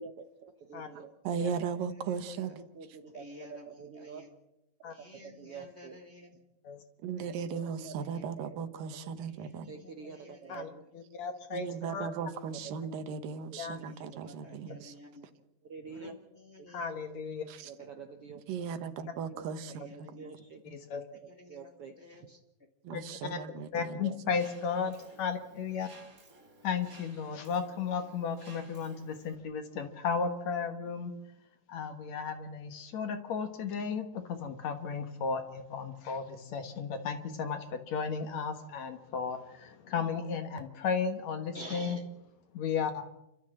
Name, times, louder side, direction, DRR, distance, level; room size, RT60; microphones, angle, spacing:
voice 1, 0.0-1.1 2.4-4.3 5.1-6.0 7.7-8.0 8.4-8.9 9.7-10.8 12.2-12.3 12.6-12.7 13.5-13.9 14.4-14.5 15.6-16.2 16.6-16.7 17.7-18.4 19.3-20.6 21.2-22.3 23.5-23.6 23.9-24.1, right 5 dB, 60° right, 6 dB, 1.5 m, -47 dB
voice 2, 1.2-2.6 7.0-9.7 11.5-14.9 17.5-17.7 18.5-19.9 20.7-20.8 22.8-24.0, right 6 dB, 80° right, 10 dB, 2.9 m, -37 dB
voice 3, 2.1-2.5 3.1-4.3 4.9-6.4 7.2-7.4 8.0-8.6 9.3-10.6 13.7-15.3 15.9-16.9 17.8-17.9 19.7-20.3 21.3-21.7 22.0-22.4 23.6-23.7 41.5-42.0, left 1 dB, 25° left, 1 dB, 1.8 m, -51 dB
voice 4, 10.9-12.1 13.6-13.8 16.7-17.5 20.7-21.0 22.9-23.0 23.3-23.4 23.7-25.9 26.6-31.1 31.7-42.0 42.5-43.0, left 6 dB, 60° left, 7 dB, 2.4 m, -34 dB
Mechanisms, 24.3-29.3, right 3 dB, 30° right, 2.1 m, -57 dB
29.0 x 13.5 x 7.8 m, 0.91 s
omnidirectional pair, 3.9 m